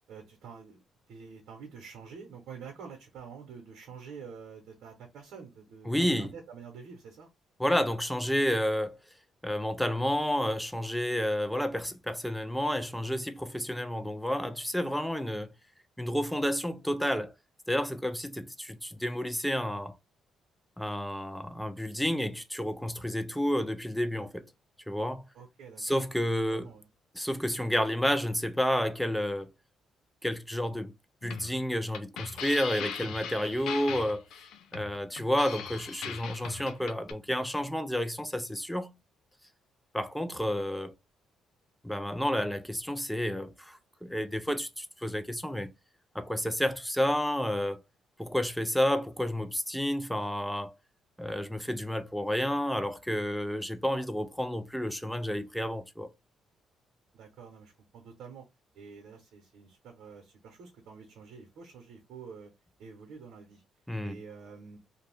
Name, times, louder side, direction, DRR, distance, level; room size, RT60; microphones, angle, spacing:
voice 1, 0.1-0.8 1.1-7.3 25.3-26.0 26.5-26.8 57.1-58.4 58.7-62.5 62.8-63.6 64.0-64.8, right 6 dB, 80° right, 0.8 m, -47 dB
voice 2, 5.9-6.3 7.6-9.0 9.4-15.5 16.0-17.3 17.7-20.0 20.8-24.5 24.9-25.2 25.8-26.7 27.1-29.5 30.2-30.9 31.2-34.3 34.7-38.9 39.9-40.9 41.8-45.7 46.1-47.8 48.2-50.7 51.2-56.1 63.9-64.2, equal, ahead, 0.4 m, -30 dB
sound 1, 31.2-37.1, left 7 dB, 80° left, 0.5 m, -40 dB
2.6 x 2.3 x 3.3 m
cardioid pair, 90°, 0 cm